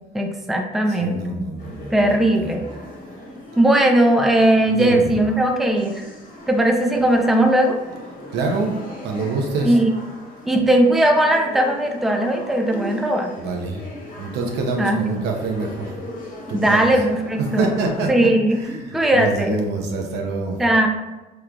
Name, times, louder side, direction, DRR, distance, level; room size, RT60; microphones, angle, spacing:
voice 1, 0.1-1.5 1.9-2.6 3.6-6.0 6.5-7.8 9.6-9.9 10.5-13.3 14.8-15.2 16.5-17.7 18.1-18.6 18.9-19.6 20.6-20.9, right 1 dB, ahead, 2 dB, 0.4 m, -18 dB
voice 2, 0.9-2.7 4.7-5.2 8.3-8.8 9.0-9.8 13.4-13.8 14.2-15.9 16.5-16.9 17.6-18.3 18.6-20.6, right 3 dB, 80° right, 1 dB, 0.7 m, -26 dB
sound 1, 1.6-18.1, equal, 50° left, 1.2 m, -39 dB
3.7 x 3.1 x 2.2 m, 1.1 s
cardioid pair, 110°, 17 cm